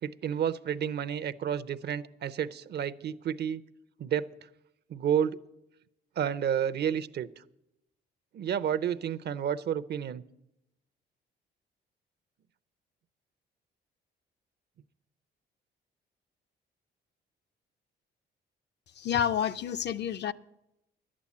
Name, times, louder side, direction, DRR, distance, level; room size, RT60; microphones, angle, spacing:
voice 1, 0.0-3.6 4.0-4.3 4.9-5.4 6.2-7.4 8.3-10.2, right 9 dB, 55° right, 0.6 m, -30 dB
voice 2, 19.0-20.3, left 9 dB, 60° left, 0.6 m, -29 dB
11.0 x 8.6 x 8.4 m
cardioid pair, 90°, 20 cm